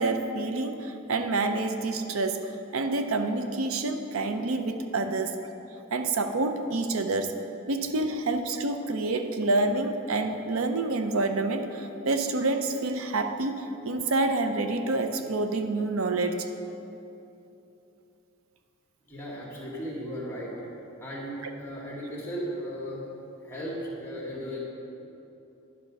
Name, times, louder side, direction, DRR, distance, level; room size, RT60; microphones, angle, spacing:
voice 1, 0.0-2.4 2.7-5.3 5.9-7.3 7.7-16.5 21.4-21.5, right 2 dB, 80° right, 7 dB, 0.6 m, -28 dB
voice 2, 19.1-20.7 21.0-23.0 23.4-24.6, equal, 10° left, -4 dB, 1.9 m, -36 dB
10.5 x 5.9 x 5.3 m, 2.9 s
head